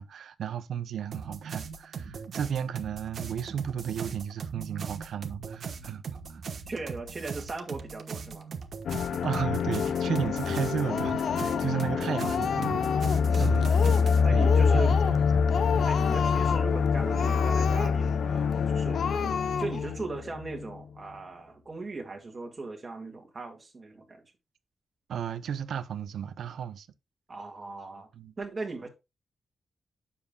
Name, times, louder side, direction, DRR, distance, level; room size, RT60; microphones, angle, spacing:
voice 1, 0.0-6.4 9.2-12.8 13.4-13.7 14.3-15.9 25.1-26.9 28.1-28.3, right 8 dB, 85° right, 0.7 m, -34 dB
sound 1, 1.1-14.2, right 6 dB, 60° right, 1.2 m, -39 dB
voice 2, 6.7-8.5 9.1-9.2 11.9-12.1 13.3-13.6 14.2-14.9 15.9-19.3 19.6-24.2 27.3-28.1 28.4-28.9, right 3 dB, 30° right, 1.8 m, -38 dB
sound 2, 8.9-20.8, left 6 dB, 85° left, 0.4 m, -26 dB
Speech, 10.9-11.8 12.1-13.3 13.6-14.1 14.4-15.2 15.5-16.7 17.1-18.2 18.5-18.6 18.9-19.9, left 6 dB, 65° left, 0.9 m, -32 dB
9.6 x 7.0 x 2.3 m
wide cardioid pair, 145°, 0 cm